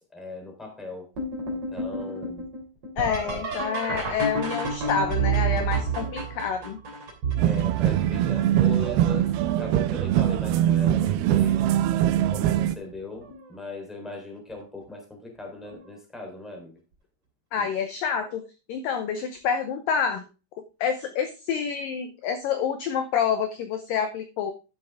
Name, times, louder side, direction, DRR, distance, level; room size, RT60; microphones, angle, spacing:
voice 1, 0.1-1.1 1.5-2.5 3.2-3.4 7.3-11.8 12.3-16.8 17.6-17.7, left 2 dB, ahead, 1 dB, 2.5 m, -39 dB
sound 1, 1.2-8.8 9.5-10.0 10.5-11.1 12.4-12.5 13.2-13.5 15.7-15.8 18.1-18.2, right 4 dB, 40° right, 3.5 m, -30 dB
voice 2, 3.0-6.8 17.5-18.4 18.7-20.2 20.8-24.5, left 7 dB, 80° left, 8 dB, 2.0 m, -28 dB
sound 2, 7.4-12.7, right 12 dB, 85° right, 2.2 m, -22 dB
11.5 x 7.3 x 3.5 m, 0.31 s
omnidirectional pair, 5.0 m